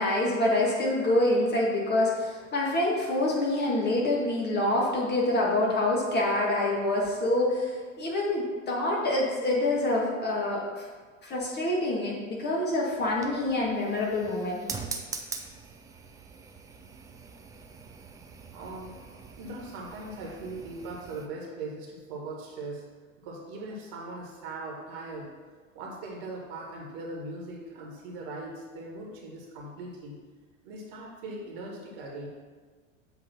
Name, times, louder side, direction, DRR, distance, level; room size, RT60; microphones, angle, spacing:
voice 1, 0.0-10.9 11.2-14.6, left 1 dB, 25° left, -3 dB, 1.8 m, -26 dB
sound 1, 12.9-21.3, right 5 dB, 10° right, 0.4 m, -43 dB
voice 2, 18.5-19.0 19.4-22.8 23.2-25.3 25.7-30.2 30.6-32.3, right 2 dB, 50° right, -2 dB, 2.0 m, -40 dB
7.2 x 3.9 x 5.9 m, 1.5 s
figure-of-eight pair, 85°, 39 cm